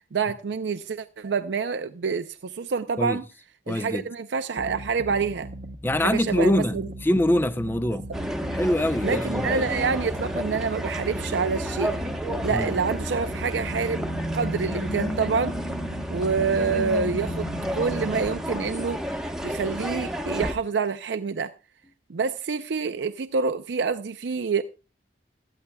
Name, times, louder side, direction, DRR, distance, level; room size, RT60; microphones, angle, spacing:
voice 1, 0.0-3.3 3.7-5.5 6.0-6.8 9.0-11.9 12.4-14.0 14.3-15.6 16.1-21.5 22.1-24.6, right 5 dB, 85° right, 0.5 m, -27 dB
voice 2, 3.7-4.0 5.8-8.1 8.5-9.7 12.5-12.7, left 1 dB, 10° left, 0.5 m, -24 dB
sound 1, 4.6-18.2, right 1 dB, 55° right, 0.8 m, -39 dB
sound 2, 8.1-20.5, equal, 5° right, 1.1 m, -31 dB
sound 3, 13.1-19.4, equal, 45° left, 0.9 m, -36 dB
17.0 x 12.5 x 2.3 m
head